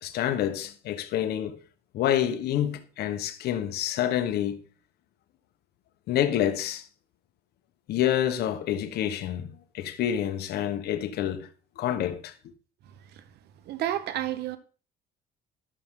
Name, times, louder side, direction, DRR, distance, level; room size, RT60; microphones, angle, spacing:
voice 1, 0.0-1.6 1.9-4.6 6.1-6.8 7.9-11.5 11.8-12.3, left 11 dB, 75° left, 1.1 m, -28 dB
voice 2, 13.6-14.6, right 12 dB, 75° right, 1.0 m, -30 dB
12.5 x 5.9 x 3.7 m
cardioid pair, 110°, 17 cm